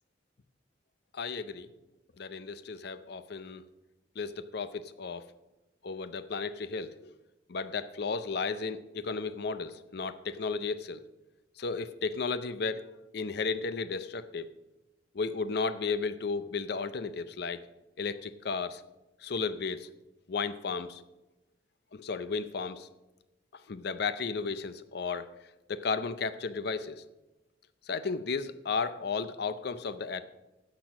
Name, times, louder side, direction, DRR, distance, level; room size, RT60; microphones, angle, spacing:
voice 1, 1.1-1.7 2.2-3.6 4.2-5.3 5.8-7.1 7.5-11.0 11.6-12.8 13.1-14.5 15.1-17.6 18.0-18.8 19.2-19.9 20.3-21.0 21.9-22.9 23.7-25.3 25.7-27.0 27.9-30.2, left 4 dB, 65° left, 13 dB, 0.6 m, -34 dB
10.5 x 6.1 x 6.1 m, 1.0 s
head